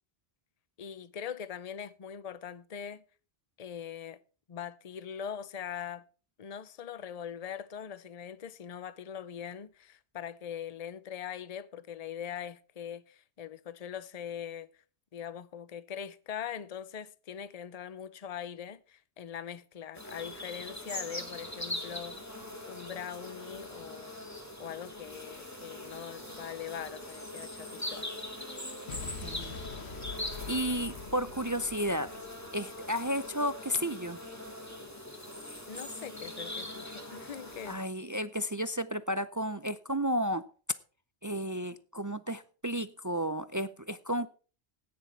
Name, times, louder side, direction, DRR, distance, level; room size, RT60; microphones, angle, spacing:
voice 1, 0.8-3.0 3.6-4.2 4.5-6.0 6.4-14.7 15.1-22.2 22.7-24.2 24.6-28.1 35.7-37.8, left 8 dB, 40° left, 0.8 m, -42 dB
sound 1, 19.9-37.7, left 1 dB, 15° left, 2.2 m, -42 dB
Explosion, 28.9-33.0, left 5 dB, 70° left, 1.5 m, -44 dB
voice 2, 29.2-29.6 30.5-32.1 32.5-34.2 37.6-40.4 41.2-44.3, equal, 30° right, 0.3 m, -32 dB
14.5 x 9.7 x 4.5 m
omnidirectional pair, 1.1 m